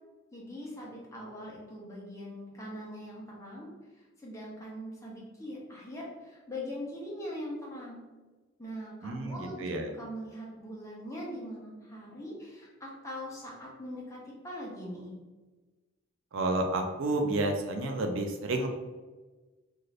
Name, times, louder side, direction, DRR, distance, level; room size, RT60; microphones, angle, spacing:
voice 1, 0.3-3.7 4.2-8.1 8.6-9.7 10.0-15.1, equal, 15° left, -4 dB, 0.6 m, -41 dB
voice 2, 9.0-9.9 16.3-18.7, right 2 dB, 70° right, 4 dB, 0.4 m, -30 dB
2.6 x 2.5 x 3.1 m, 1.2 s
head